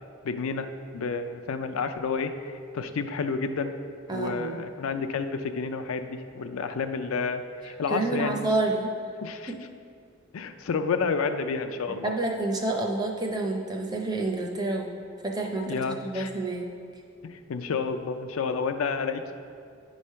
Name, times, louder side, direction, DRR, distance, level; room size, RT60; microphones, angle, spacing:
voice 1, 0.2-0.7 0.9-3.7 4.1-8.4 9.2-9.5 10.3-12.1 15.7-16.3 17.2-19.3, left 5 dB, 90° left, 8 dB, 0.4 m, -30 dB
voice 2, 4.1-4.6 7.9-8.9 9.5-9.6 12.0-14.9 15.2-16.7, right 2 dB, 20° right, 1 dB, 0.5 m, -29 dB
9.3 x 3.2 x 5.5 m, 2.3 s
head